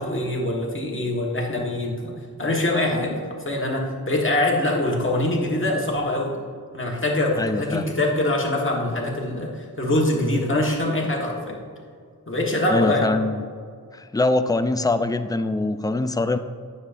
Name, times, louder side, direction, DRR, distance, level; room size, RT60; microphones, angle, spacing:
voice 1, 0.0-2.1 2.4-3.2 3.4-6.3 6.7-11.6 12.3-13.1, left 1 dB, 35° left, -2 dB, 1.5 m, -24 dB
voice 2, 7.4-7.9 12.7-13.4 13.9-16.4, left 2 dB, 10° left, 9 dB, 0.3 m, -23 dB
9.6 x 6.6 x 2.6 m, 2.1 s
wide cardioid pair, 60°, 36 cm